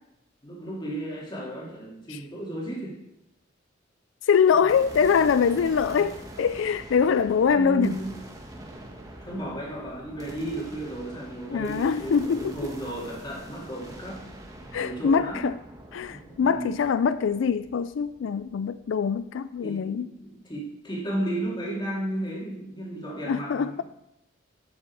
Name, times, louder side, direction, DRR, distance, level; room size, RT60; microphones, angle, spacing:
voice 1, 0.4-3.0 6.0-6.1 7.5-8.2 9.2-14.2 14.8-15.5 16.1-16.8 19.6-23.8, right 1 dB, 25° left, 2.8 m, -34 dB
voice 2, 4.2-8.0 11.5-12.6 14.7-15.6 15.9-20.1 23.3-23.8, left 6 dB, 85° left, 0.4 m, -23 dB
sound 1, 4.7-19.0, right 1 dB, 20° right, 1.5 m, -44 dB
14.5 x 7.1 x 4.7 m
head